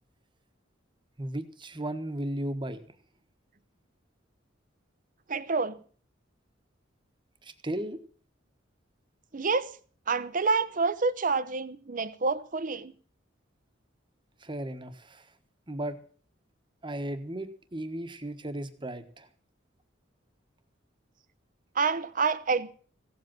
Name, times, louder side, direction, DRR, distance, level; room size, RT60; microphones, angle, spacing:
voice 1, 1.2-2.9 7.4-8.0 14.4-15.4 15.7-16.0 16.8-19.3, right 1 dB, 25° right, 1.3 m, -35 dB
voice 2, 5.3-5.8 9.3-9.7 10.1-12.9 21.8-22.7, right 4 dB, 45° right, 0.8 m, -28 dB
16.0 x 7.9 x 7.5 m
head